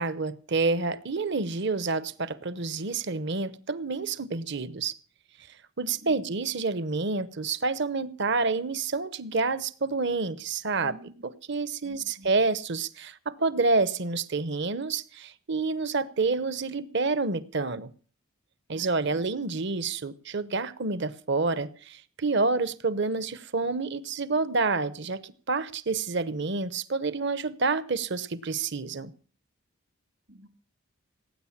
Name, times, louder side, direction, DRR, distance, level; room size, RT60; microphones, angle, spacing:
voice 1, 0.0-4.9 5.8-11.0 11.2-17.9 18.7-29.1, right 3 dB, 55° right, 0.9 m, -28 dB
voice 2, 6.0-6.3 10.8-11.3 11.8-12.3 18.7-19.3 30.3-30.5, equal, 70° right, 2.6 m, -49 dB
17.5 x 9.2 x 7.3 m
head